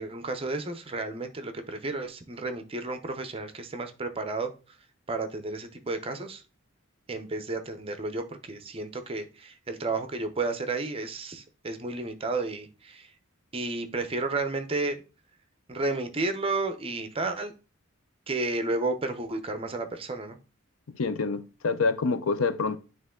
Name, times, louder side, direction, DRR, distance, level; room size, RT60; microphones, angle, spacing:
voice 1, 0.0-4.5 5.1-6.4 7.1-13.1 13.5-15.0 15.7-17.5 18.3-20.4, right 3 dB, 30° right, 0.7 m, -32 dB
voice 2, 21.0-22.8, left 4 dB, 90° left, 0.6 m, -27 dB
9.2 x 3.1 x 3.7 m
head